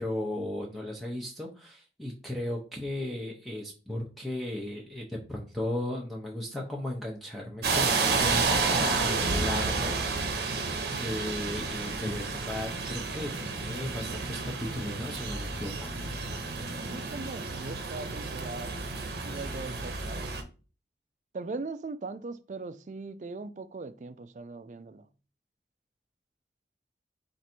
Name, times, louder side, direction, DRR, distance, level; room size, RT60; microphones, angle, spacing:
voice 1, 0.0-8.5 8.8-10.4 10.9-15.9, left 1 dB, ahead, 0.6 m, -36 dB
sound 1, 7.6-20.4, right 4 dB, 65° right, 0.7 m, -31 dB
voice 2, 16.8-18.8 19.2-20.3 21.3-25.1, right 3 dB, 45° right, 0.4 m, -40 dB
4.7 x 2.5 x 4.3 m
head